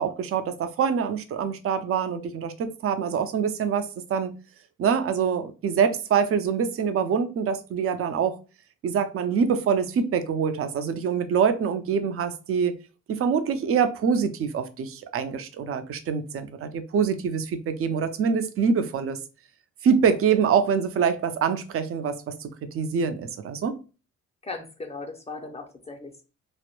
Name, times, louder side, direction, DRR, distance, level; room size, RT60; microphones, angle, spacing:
voice 1, 0.0-4.3 4.8-8.4 8.8-12.7 13.1-19.2 19.8-22.5 22.7-23.8, right 6 dB, 50° right, 0.4 m, -25 dB
voice 2, 24.4-26.2, left 3 dB, 20° left, 0.4 m, -38 dB
2.1 x 2.0 x 2.9 m
cardioid pair, 90°, 30 cm